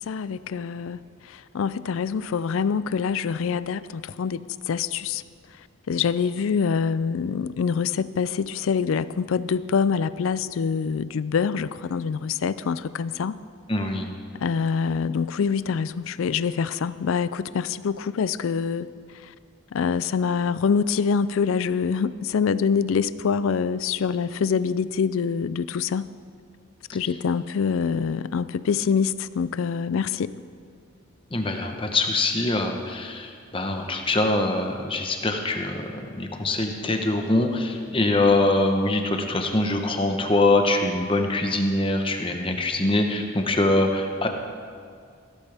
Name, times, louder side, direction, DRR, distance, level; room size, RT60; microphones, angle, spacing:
voice 1, 0.0-5.2 5.9-13.4 14.4-18.9 19.2-19.3 19.7-26.1 26.9-30.3, left 6 dB, 75° left, 16 dB, 0.4 m, -25 dB
voice 2, 13.7-14.1 31.3-44.3, left 2 dB, 25° left, 4 dB, 1.0 m, -23 dB
16.0 x 13.5 x 3.5 m, 2.2 s
head